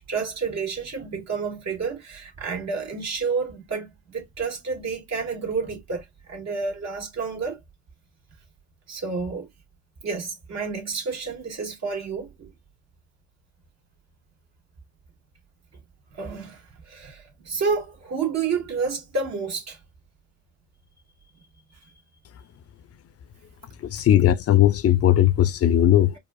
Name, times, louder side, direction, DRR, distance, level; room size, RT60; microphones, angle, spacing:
voice 1, 0.1-7.6 8.9-9.5 10.0-12.5 16.1-19.8, right 5 dB, 60° right, 2.1 m, -30 dB
voice 2, 23.9-26.1, left 12 dB, 50° left, 0.5 m, -18 dB
4.7 x 2.4 x 2.3 m
cardioid pair, 90°, 30 cm